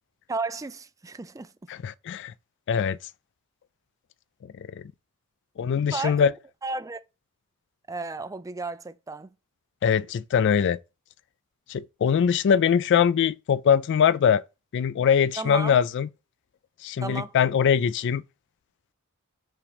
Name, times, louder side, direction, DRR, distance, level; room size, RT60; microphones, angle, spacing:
voice 1, 0.3-1.5 5.9-6.3 6.6-7.0 7.9-9.3 15.4-15.8 17.0-17.3, right 3 dB, 15° right, 0.4 m, -33 dB
voice 2, 1.7-2.3 2.7-3.0 4.8-4.9 5.6-6.3 9.8-10.8 11.7-14.4 14.7-16.1 16.8-18.2, left 7 dB, 55° left, 0.3 m, -22 dB
5.6 x 5.2 x 5.0 m
head